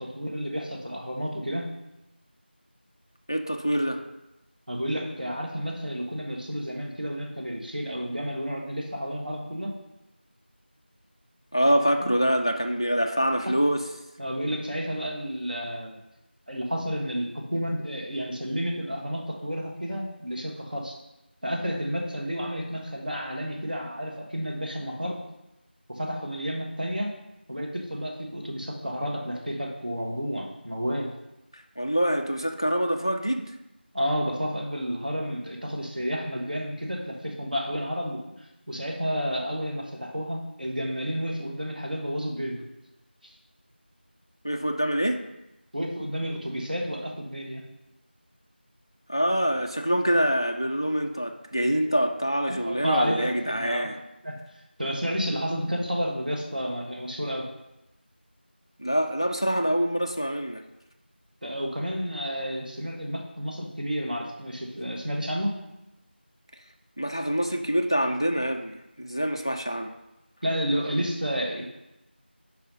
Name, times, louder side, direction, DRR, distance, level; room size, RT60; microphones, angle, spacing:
voice 1, 0.0-1.7 4.7-9.7 12.0-12.1 14.2-16.0 16.5-20.9 21.4-25.2 25.9-27.1 27.5-31.1 33.9-38.2 38.7-42.6 43.2-43.3 45.7-47.6 52.5-53.9 54.2-54.4 54.8-57.5 61.4-65.5 70.4-71.7, equal, 50° right, 0 dB, 1.4 m, -31 dB
voice 2, 3.3-4.0 11.5-13.8 31.5-33.5 44.4-45.2 49.1-54.0 58.8-60.6 67.0-69.9, equal, 25° left, 4 dB, 0.3 m, -25 dB
5.7 x 5.3 x 5.2 m, 0.93 s
figure-of-eight pair, 175°, 6 cm